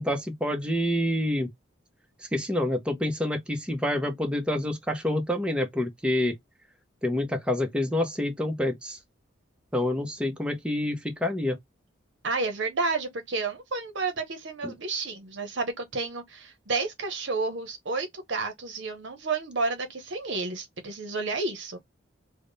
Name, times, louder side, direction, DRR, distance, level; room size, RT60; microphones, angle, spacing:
voice 1, 0.0-1.5 2.3-6.3 7.0-9.0 9.7-11.6 14.6-14.7, left 1 dB, 5° right, 0.6 m, -27 dB
voice 2, 12.2-21.8, right 3 dB, 70° right, 0.8 m, -31 dB
3.4 x 2.1 x 3.8 m
head